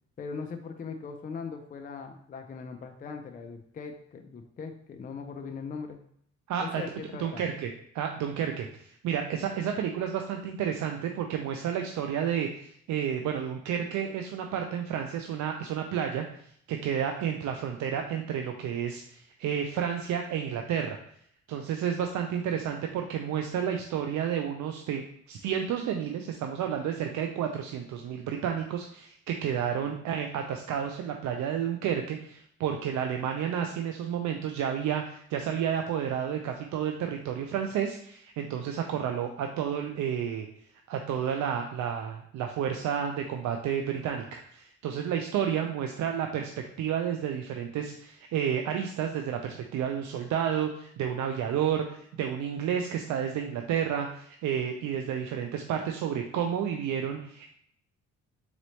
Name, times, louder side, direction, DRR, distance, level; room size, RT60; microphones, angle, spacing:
voice 1, 0.2-6.0 6.6-7.4, left 5 dB, 30° left, 5 dB, 0.4 m, -40 dB
voice 2, 6.5-6.8 7.2-21.0 21.5-25.0 25.3-40.5 40.9-46.5 46.8-57.5, right 8 dB, 70° right, 4 dB, 0.4 m, -31 dB
3.9 x 3.1 x 3.1 m, 0.68 s
cardioid pair, 90°, 30 cm